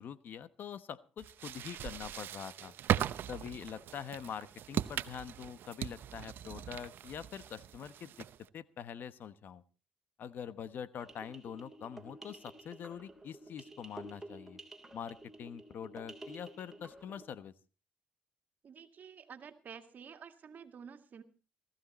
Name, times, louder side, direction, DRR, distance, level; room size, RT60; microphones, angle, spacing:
voice 1, 0.0-2.7 3.3-8.3 8.5-9.6 10.2-14.6 14.9-17.5, left 8 dB, 60° left, 14 dB, 1.1 m, -44 dB
sound 1, 1.2-8.5, right 11 dB, 65° right, 0.8 m, -39 dB
sound 2, 11.0-17.3, right 1 dB, 5° right, 3.3 m, -51 dB
voice 2, 18.6-21.2, right 7 dB, 50° right, 8 dB, 2.1 m, -50 dB
18.5 x 14.5 x 4.2 m, 0.35 s
cardioid pair, 90°, 4 cm